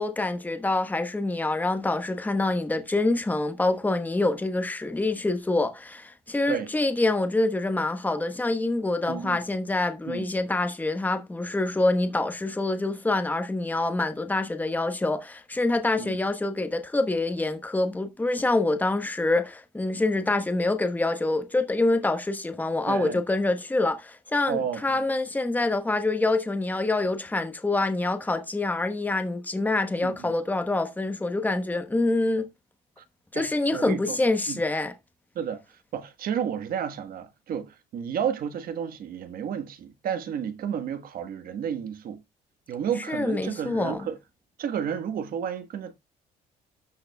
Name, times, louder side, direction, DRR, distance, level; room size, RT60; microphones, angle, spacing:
voice 1, 0.0-32.5 33.3-34.9 43.1-44.1, left 2 dB, 10° left, 1.1 m, -26 dB
voice 2, 9.1-9.4 10.1-10.2 16.0-16.2 22.9-23.2 24.5-24.8 30.0-30.3 33.0-33.1 33.3-33.5 33.7-34.2 34.5-34.6 35.3-42.2 42.7-44.2 44.6-46.0, right 8 dB, 60° right, 1.4 m, -31 dB
13.0 x 6.6 x 2.3 m
cardioid pair, 110°, 17 cm